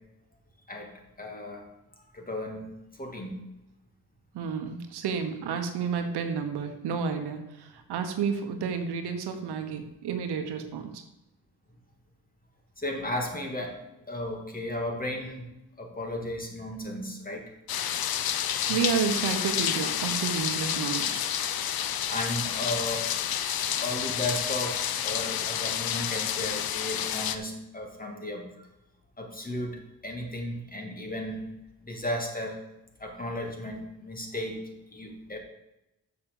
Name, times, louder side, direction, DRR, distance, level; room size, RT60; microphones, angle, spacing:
voice 1, 1.2-1.7 2.1-2.7 3.0-3.4 12.8-15.5 15.8-17.5 18.7-18.8 22.1-23.1 23.8-28.4 29.2-31.5 31.8-32.6 33.0-34.6 34.9-35.4, left 1 dB, 20° left, 1 dB, 2.6 m, -34 dB
voice 2, 4.3-11.0 18.7-21.2, right 6 dB, 85° right, 6 dB, 1.2 m, -31 dB
sound 1, 17.7-27.4, left 9 dB, 65° left, 0.7 m, -29 dB
7.1 x 6.4 x 7.1 m, 0.91 s
cardioid pair, 70°, 38 cm